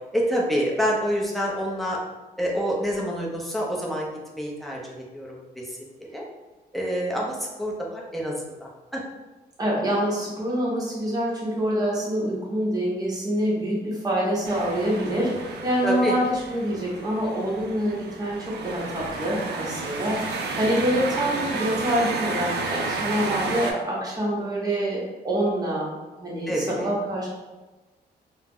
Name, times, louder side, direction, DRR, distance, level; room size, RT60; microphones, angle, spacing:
voice 1, 0.1-2.0 2.4-6.2 6.7-9.0 15.8-16.2 26.5-26.9, equal, ahead, -3 dB, 0.5 m, -27 dB
voice 2, 9.6-25.9 26.2-27.3, equal, 20° right, -5 dB, 0.9 m, -26 dB
sound 1, 14.4-23.7, right 3 dB, 75° right, 0.4 m, -32 dB
2.2 x 2.0 x 3.5 m, 1.2 s
cardioid pair, 120°, 17 cm